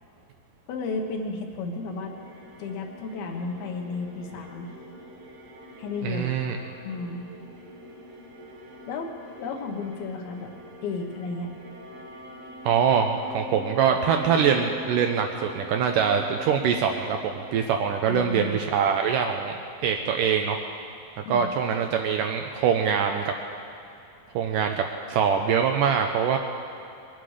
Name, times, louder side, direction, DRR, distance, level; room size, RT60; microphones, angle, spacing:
voice 1, 0.7-2.1 2.6-4.7 5.8-6.4 6.9-7.3 8.9-10.5 10.8-11.5 18.0-18.6 21.3-21.5, left 4 dB, 80° left, 3 dB, 3.1 m, -33 dB
sound 1, 1.6-17.9, equal, 65° right, 3.9 m, -44 dB
voice 2, 6.0-6.6 12.6-19.5 19.8-20.6 21.3-23.3 24.4-26.4, right 7 dB, 80° right, 4 dB, 2.0 m, -24 dB
22.0 x 11.5 x 4.9 m, 2.7 s
omnidirectional pair, 4.4 m